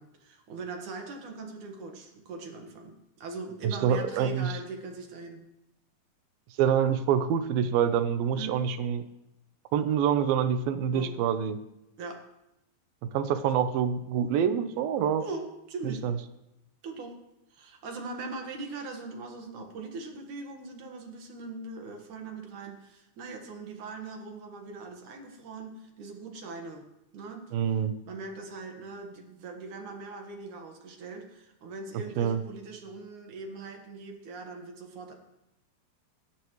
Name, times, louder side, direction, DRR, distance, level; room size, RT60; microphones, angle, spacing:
voice 1, 0.0-5.4 8.3-8.6 10.9-11.2 12.0-12.3 15.2-16.1 16.8-17.2 17.5-26.8 27.1-27.5 28.1-35.1, right 3 dB, 65° right, 3 dB, 2.9 m, -41 dB
voice 2, 3.6-4.5 6.6-9.0 9.7-11.6 13.1-15.2 15.8-16.2 27.5-27.9 32.2-32.4, right 8 dB, 90° right, 10 dB, 2.7 m, -26 dB
24.0 x 12.5 x 3.2 m, 0.89 s
omnidirectional pair, 4.1 m